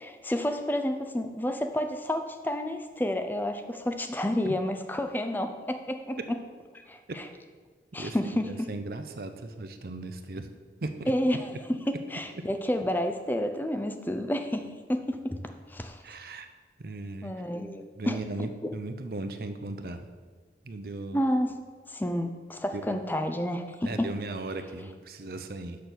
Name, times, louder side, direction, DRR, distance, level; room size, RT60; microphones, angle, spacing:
voice 1, 0.0-6.2 6.9-7.3 7.9-8.7 11.1-15.4 15.7-16.0 17.2-18.2 18.6-18.7 21.1-21.5 21.9-24.1, left 1 dB, 10° left, 6 dB, 0.4 m, -30 dB
voice 2, 8.4-10.5 10.8-11.1 11.5-11.6 16.0-16.5 16.8-17.3 18.0-20.0 20.6-21.3 22.7-23.0 23.8-25.8, right 2 dB, 55° right, 8 dB, 0.6 m, -37 dB
6.6 x 5.2 x 6.2 m, 1.5 s
head